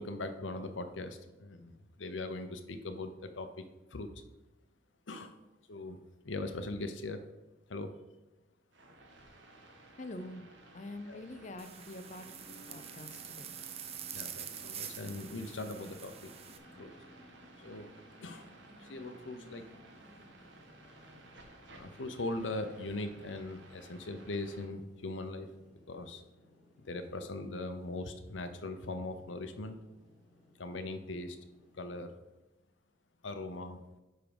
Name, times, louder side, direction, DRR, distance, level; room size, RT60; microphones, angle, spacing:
voice 1, 0.0-3.7 3.9-4.1 5.1-5.4 5.7-7.2 7.7-8.0 11.1-11.2 14.1-16.3 16.8-16.9 17.6-17.9 18.2-19.7 21.7-25.5 25.9-26.2 26.8-29.8 30.6-31.4 31.7-32.2 33.2-33.8, left 2 dB, 85° left, 8 dB, 0.8 m, -40 dB
sound 1, 8.7-24.7, right 2 dB, 75° right, 1.2 m, -56 dB
voice 2, 10.0-10.4 10.7-13.5, left 1 dB, 40° left, 9 dB, 0.6 m, -45 dB
sound 2, 11.6-16.6, right 9 dB, 35° right, 0.6 m, -46 dB
sound 3, 12.2-31.9, left 1 dB, ahead, 2.5 m, -61 dB
9.5 x 3.7 x 5.3 m, 1.0 s
head